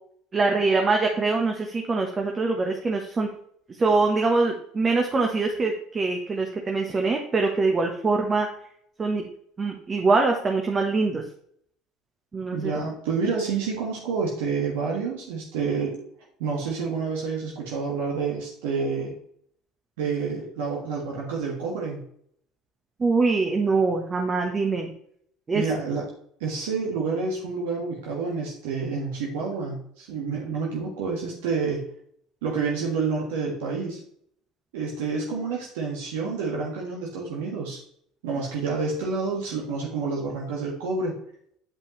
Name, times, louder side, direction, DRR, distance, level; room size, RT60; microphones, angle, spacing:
voice 1, 0.3-3.3 3.7-8.5 9.0-9.3 9.6-11.2 12.3-12.7 23.0-24.9 25.5-25.6, right 3 dB, 30° right, 2 dB, 1.1 m, -23 dB
voice 2, 12.5-15.9 16.4-19.1 20.0-22.0 25.5-26.0 26.4-31.8 32.4-34.0 34.7-37.8 38.2-41.1, right 4 dB, 80° right, -2 dB, 1.5 m, -28 dB
8.6 x 5.2 x 3.1 m, 0.67 s
hypercardioid pair, 75°, 0 cm